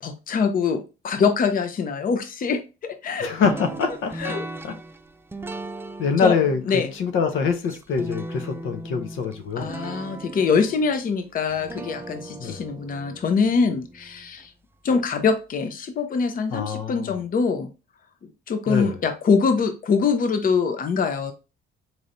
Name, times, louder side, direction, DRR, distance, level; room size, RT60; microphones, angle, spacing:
voice 1, 0.0-3.3 4.2-4.4 6.2-6.4 6.7-6.9 9.6-14.5 14.8-17.7 18.2-21.3, left 5 dB, 45° left, 0.6 m, -24 dB
voice 2, 3.2-4.3 4.6-4.7 6.0-9.7 12.4-12.6 16.5-17.2 18.7-19.0, left 5 dB, 80° left, 0.7 m, -24 dB
sound 1, 3.4-14.5, right 2 dB, 10° right, 0.3 m, -38 dB
4.1 x 3.1 x 2.6 m
cardioid pair, 90°, 20 cm